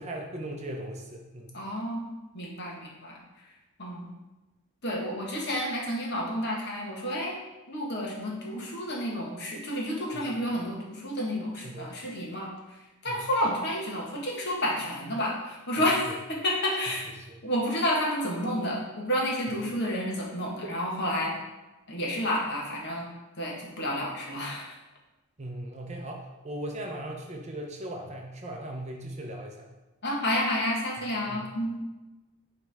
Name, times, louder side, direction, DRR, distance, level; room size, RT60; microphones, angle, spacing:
voice 1, 0.0-1.6 10.1-10.2 11.6-11.9 13.1-13.2 15.8-16.1 17.3-17.4 19.5-19.6 25.4-29.7 31.3-31.4, right 1 dB, 30° right, 1 dB, 0.6 m, -38 dB
voice 2, 1.5-2.1 2.3-3.2 3.8-4.1 4.8-7.3 7.7-12.5 13.0-17.1 17.4-21.3 21.9-23.1 23.4-24.7 30.0-31.7, equal, 50° left, -3 dB, 1.3 m, -30 dB
8.8 x 3.3 x 3.4 m, 1.1 s
head